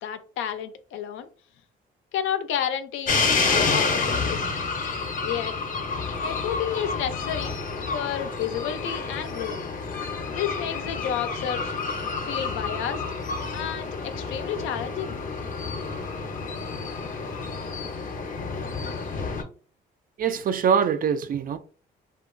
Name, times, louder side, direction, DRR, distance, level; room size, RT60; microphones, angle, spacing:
voice 1, 0.0-1.3 2.1-3.3 3.7-4.5 5.2-5.5 6.2-7.5 7.9-9.6 10.3-11.8 12.2-13.0 13.5-15.2, left 9 dB, 85° left, 0.4 m, -31 dB
sound 1, 3.1-19.4, left 4 dB, 40° left, 0.6 m, -29 dB
voice 2, 20.2-21.6, right 7 dB, 45° right, 0.4 m, -23 dB
2.8 x 2.3 x 2.5 m
cardioid pair, 90°, 20 cm